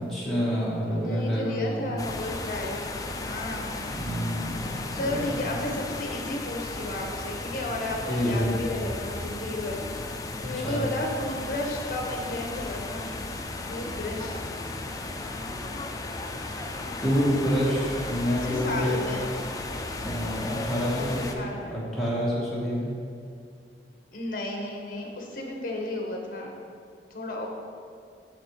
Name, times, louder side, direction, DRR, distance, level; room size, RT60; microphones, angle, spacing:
voice 1, 0.0-1.9 3.9-5.1 8.1-8.5 10.4-10.8 17.0-19.1 20.0-22.9, equal, ahead, -8 dB, 1.3 m, -28 dB
voice 2, 0.9-3.8 4.7-9.8 10.4-13.3 13.7-14.4 18.2-19.3 20.9-21.8 24.1-26.6 27.1-27.5, left 1 dB, 50° left, 1 dB, 0.9 m, -33 dB
sound 1, 2.0-21.3, left 2 dB, 20° left, 0.3 m, -35 dB
6.8 x 4.1 x 4.5 m, 2.3 s
head